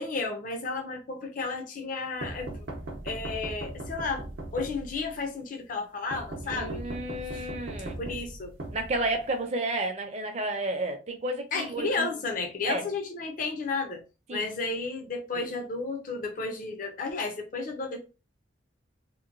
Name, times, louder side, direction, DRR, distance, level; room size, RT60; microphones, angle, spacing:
voice 1, 0.0-2.5 3.0-4.3 4.5-6.8 7.3-7.5 8.0-8.5 11.5-14.0 14.3-18.0, left 3 dB, 45° left, 0.5 m, -32 dB
sound 1, 2.2-5.2 6.1-9.4, right 1 dB, 80° right, 0.6 m, -39 dB
voice 2, 6.4-8.0 8.7-12.1 12.6-12.9 14.3-14.4 15.3-15.5, right 2 dB, 35° right, 0.5 m, -32 dB
2.9 x 2.1 x 2.5 m
head